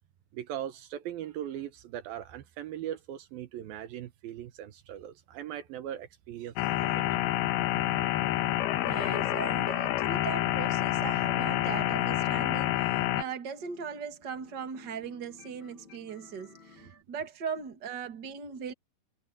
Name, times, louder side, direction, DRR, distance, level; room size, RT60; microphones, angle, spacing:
voice 1, 0.3-7.0 16.8-17.3, right 11 dB, 75° right, 2.8 m, -40 dB
sound 1, 6.6-13.2, left 13 dB, 90° left, 3.1 m, -28 dB
voice 2, 8.8-18.7, right 6 dB, 35° right, 2.3 m, -39 dB
sound 2, 13.4-17.0, left 5 dB, 30° left, 5.5 m, -55 dB
omnidirectional pair, 4.3 m